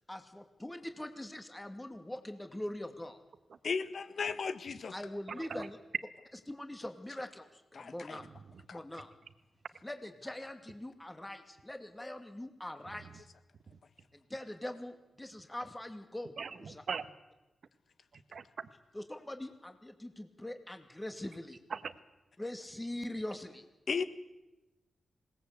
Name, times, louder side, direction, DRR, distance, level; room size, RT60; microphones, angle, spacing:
voice 1, 0.1-3.2 4.9-5.8 6.5-8.2 8.7-9.1 9.8-13.3 14.1-16.6 18.9-21.6 22.4-23.6, left 1 dB, 15° left, 7 dB, 2.5 m, -42 dB
voice 2, 3.6-4.9 7.7-8.2 8.7-8.8 23.9-24.0, left 5 dB, 70° left, 12 dB, 1.5 m, -35 dB
voice 3, 5.3-5.7 8.2-8.3 13.7-13.8 16.4-17.1 18.1-18.7 21.7-21.9, right 6 dB, 70° right, 13 dB, 1.3 m, -41 dB
21.0 x 18.5 x 8.2 m, 1.0 s
cardioid pair, 50°, 0 cm